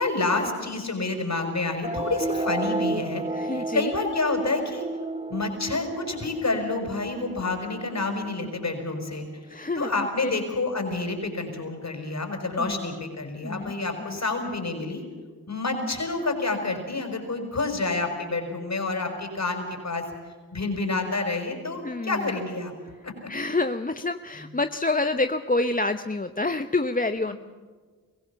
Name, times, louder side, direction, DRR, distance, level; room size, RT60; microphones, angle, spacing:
voice 1, 0.0-4.9 5.3-9.3 9.8-15.0 15.5-20.0 20.5-22.7 23.0-23.3 27.3-27.4, left 3 dB, 45° left, 5 dB, 5.8 m, -28 dB
sound 1, 1.8-8.8, right 2 dB, 15° right, 1.7 m, -32 dB
voice 2, 3.3-3.9 9.5-10.3 12.6-12.8 13.4-13.7 14.0-14.2 21.8-22.3 23.3-27.3, left 2 dB, 25° left, 9 dB, 0.9 m, -27 dB
23.0 x 16.5 x 7.1 m, 1.5 s
supercardioid pair, 40°, 37 cm